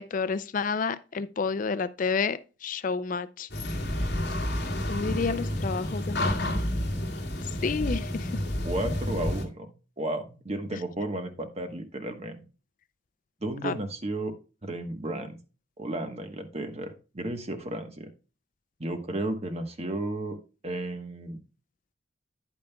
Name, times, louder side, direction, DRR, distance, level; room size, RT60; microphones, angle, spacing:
voice 1, 0.0-3.5 4.9-6.6 7.6-8.3 13.6-13.7, left 5 dB, 45° left, 0.4 m, -30 dB
sound 1, 3.5-9.4, left 1 dB, 60° left, 2.0 m, -30 dB
voice 2, 8.6-12.4 13.4-14.3 14.6-15.4 15.8-18.1 18.8-20.4 20.6-21.4, right 1 dB, 35° right, 1.1 m, -33 dB
10.0 x 8.8 x 2.3 m
head